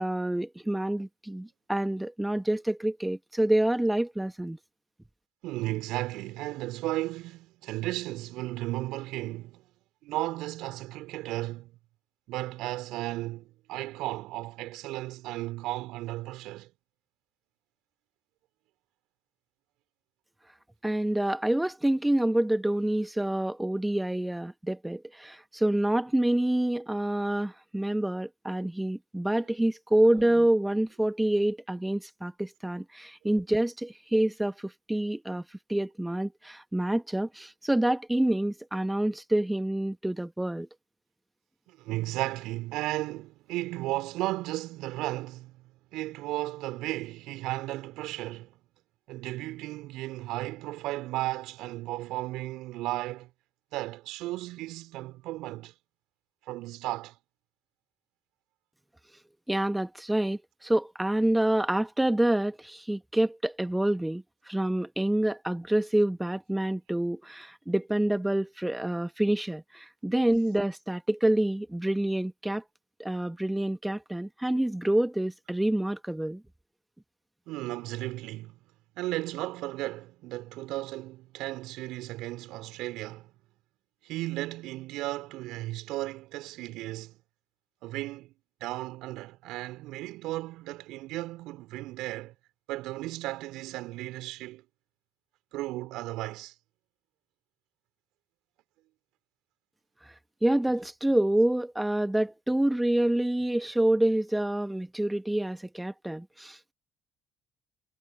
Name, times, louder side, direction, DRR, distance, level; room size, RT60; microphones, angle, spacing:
voice 1, 0.0-4.6 20.8-40.7 59.5-72.6 73.0-76.4 100.0-100.1 100.4-106.7, right 1 dB, 10° right, 1.6 m, -27 dB
voice 2, 5.4-9.7 10.0-11.8 12.3-16.7 29.4-29.5 41.7-45.6 45.9-48.6 49.1-53.3 53.7-55.7 56.5-57.2 77.5-78.7 79.0-83.3 84.0-87.2 87.8-88.3 88.6-92.3 92.7-94.6 95.5-96.5, right 18 dB, 65° right, 3.8 m, -35 dB
hypercardioid pair, 55°, 0 cm